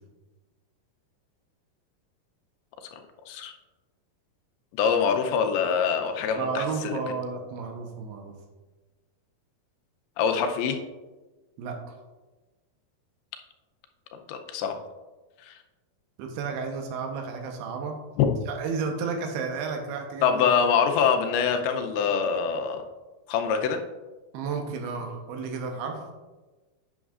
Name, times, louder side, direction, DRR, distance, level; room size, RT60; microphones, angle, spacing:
voice 1, 4.7-7.0 10.2-10.8 14.1-14.8 15.4-15.6 18.2-18.3 20.2-22.8 23.3-23.8, left 6 dB, 85° left, 5 dB, 2.6 m, -24 dB
voice 2, 6.3-8.3 11.6-11.8 16.2-18.0 18.5-20.4 24.3-26.0, right 5 dB, 90° right, 3 dB, 2.8 m, -32 dB
9.0 x 6.2 x 2.4 m, 1.2 s
omnidirectional pair, 4.4 m